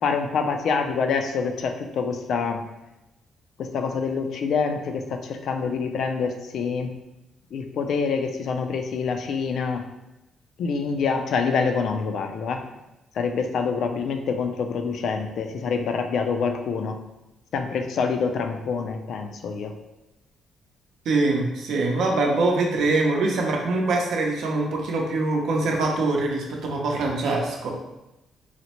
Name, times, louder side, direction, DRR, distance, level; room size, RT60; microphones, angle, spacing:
voice 1, 0.0-2.6 3.6-6.9 7.5-9.8 10.6-12.6 13.2-17.0 17.5-19.7, left 5 dB, 70° left, 5 dB, 0.4 m, -26 dB
voice 2, 21.0-27.7, right 2 dB, 75° right, 0 dB, 0.6 m, -23 dB
4.1 x 2.1 x 2.9 m, 0.97 s
cardioid pair, 90°, 0 cm